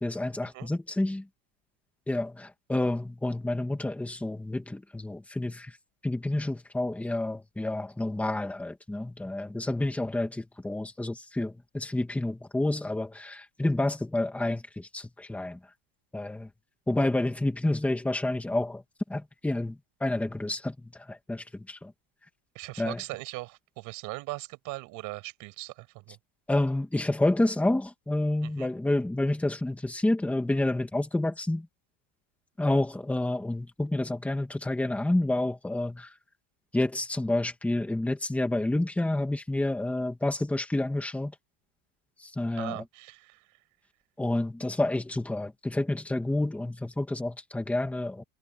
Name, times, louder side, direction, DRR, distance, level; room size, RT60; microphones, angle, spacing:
voice 1, 0.0-1.2 2.1-5.7 6.0-15.6 16.1-16.5 16.9-18.8 19.1-21.9 22.8-23.0 26.5-31.7 32.6-36.1 36.7-41.3 42.4-42.8 44.2-48.2, left 1 dB, 5° left, 2.1 m, -29 dB
voice 2, 22.5-26.2 28.4-28.7 42.6-43.6, right 21 dB, 40° right, 6.1 m, -40 dB
cardioid pair, 180°, 47 cm